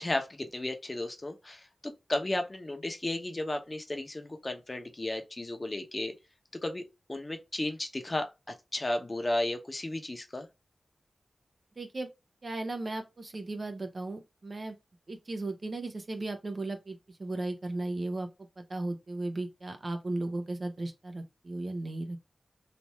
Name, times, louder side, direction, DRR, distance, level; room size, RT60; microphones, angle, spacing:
voice 1, 0.0-6.1 6.6-6.8 7.1-8.3 8.7-10.5, left 1 dB, 30° left, 0.8 m, -34 dB
voice 2, 11.8-12.1 12.4-14.8 15.1-18.3 18.6-22.2, right 2 dB, 45° right, 0.7 m, -36 dB
3.3 x 2.6 x 3.0 m
wide cardioid pair, 80°, 0 cm